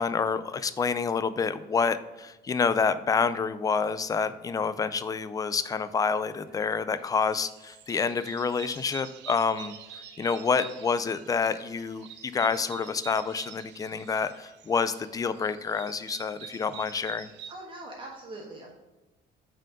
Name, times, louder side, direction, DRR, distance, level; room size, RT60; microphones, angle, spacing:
voice 1, 0.0-17.3, left 5 dB, 20° left, 13 dB, 0.3 m, -28 dB
sound 1, 6.4-6.8 7.2-17.5, right 8 dB, 75° right, 0.7 m, -47 dB
voice 2, 17.5-18.7, right 2 dB, 25° right, -1 dB, 1.3 m, -42 dB
6.2 x 4.5 x 5.3 m, 1.1 s
cardioid pair, 145°, 18 cm